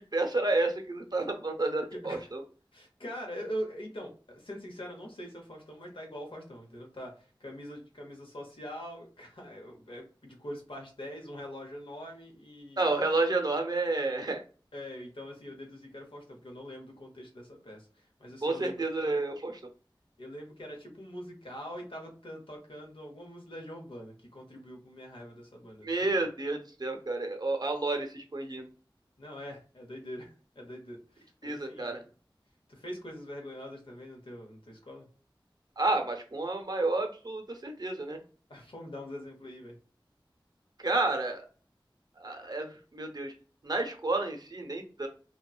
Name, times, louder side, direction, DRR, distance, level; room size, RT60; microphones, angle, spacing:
voice 1, 0.1-2.4 12.8-14.4 18.4-19.6 25.8-28.7 31.4-32.0 35.8-38.2 40.8-41.5 42.2-43.3 43.6-45.1, right 2 dB, 50° right, 3 dB, 0.6 m, -30 dB
voice 2, 1.9-2.3 2.7-12.9 14.7-18.8 20.2-26.1 29.2-31.9 32.7-35.1 38.5-39.8, equal, 85° left, 1 dB, 0.8 m, -43 dB
2.8 x 2.2 x 2.4 m, 0.38 s
wide cardioid pair, 40°, 9 cm